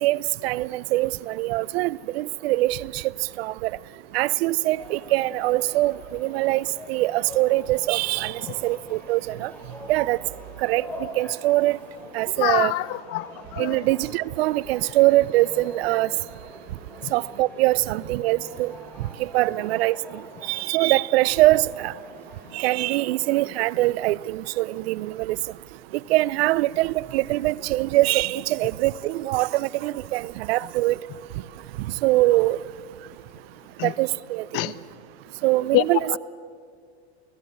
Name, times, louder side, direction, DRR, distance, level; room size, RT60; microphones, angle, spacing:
voice 1, 0.0-3.1 3.4-3.7 4.1-9.5 9.9-10.2 10.6-11.8 12.1-12.7 13.6-16.1 17.1-18.7 19.2-21.9 22.5-25.4 26.1-31.0 31.8-32.6 33.8-34.7 35.4-36.2, right 18 dB, 65° right, 0.7 m, -23 dB
sound 1, 4.8-23.4, left 1 dB, 5° left, 6.6 m, -44 dB
voice 2, 12.4-13.8 17.0-17.1 33.8-33.9 34.5-34.7 35.7-35.8 36.1-36.2, left 19 dB, 45° left, 1.0 m, -25 dB
29.0 x 18.5 x 8.0 m
hypercardioid pair, 115°, 34 cm